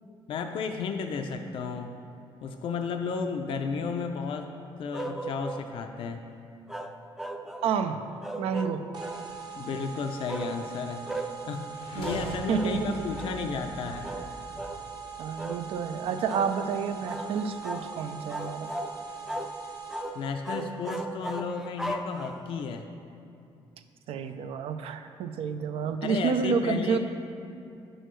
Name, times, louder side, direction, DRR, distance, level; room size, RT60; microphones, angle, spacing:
voice 1, 0.3-1.9 2.4-4.5 4.8-6.2 9.6-14.1 20.1-22.9 26.0-27.0, left 5 dB, 65° left, 5 dB, 0.4 m, -33 dB
sound 1, 4.9-5.7 6.7-7.7 8.2-9.2 10.3-10.5 11.1-11.3 12.0-12.3 12.5-12.8 13.1-13.4 14.0-14.3 14.6-14.8 15.4-15.6 16.3-16.5 17.0-17.3 17.6-17.9 18.3-18.9 19.3-19.5 19.9-20.2 20.4-22.6, right 1 dB, 5° right, 0.4 m, -36 dB
voice 2, 7.6-8.0 8.4-8.8 11.9-13.1 15.2-18.7 24.1-27.0, right 6 dB, 85° right, 8 dB, 0.4 m, -29 dB
sound 2, 8.9-20.3, right 6 dB, 45° right, 0.8 m, -42 dB
sound 3, 11.7-15.7, left 2 dB, 85° left, 0.8 m, -44 dB
8.9 x 6.3 x 3.1 m, 2.6 s
cardioid pair, 115°, 10 cm